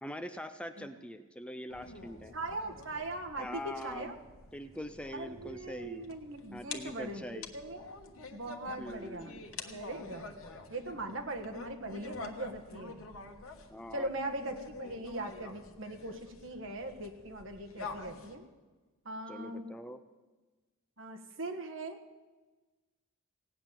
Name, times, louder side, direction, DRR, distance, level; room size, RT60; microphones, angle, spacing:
voice 1, 0.0-2.3 3.4-4.1 4.5-6.1 6.5-7.5 8.8-9.4 13.7-14.1 19.3-20.0, equal, 5° left, 9 dB, 0.4 m, -43 dB
sound 1, 1.7-18.4, left 4 dB, 80° left, 1.3 m, -48 dB
voice 2, 2.3-4.2 5.1-7.9 8.3-9.3 9.7-10.3 10.7-13.0 13.9-18.4 19.0-19.7 21.0-22.0, right 2 dB, 65° right, 4 dB, 1.5 m, -40 dB
17.0 x 9.2 x 7.4 m, 1.3 s
head